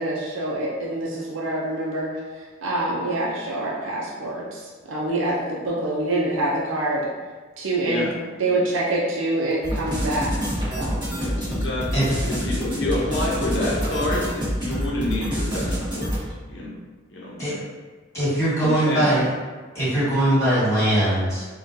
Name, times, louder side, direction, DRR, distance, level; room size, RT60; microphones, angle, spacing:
voice 1, 0.0-7.1 7.6-8.1 8.4-10.3 10.8-11.0, right 2 dB, 90° right, -4 dB, 0.6 m, -26 dB
sound 1, 9.6-16.2, equal, 25° right, 1.0 m, -27 dB
voice 2, 11.1-16.1 16.4-16.8 17.1-17.6 18.2-18.3 18.6-19.1, left 1 dB, 65° left, -5 dB, 0.7 m, -28 dB
voice 3, 18.1-19.2 19.7-21.4, right 1 dB, 15° left, -10 dB, 1.4 m, -21 dB
3.7 x 2.3 x 2.6 m, 1.4 s
head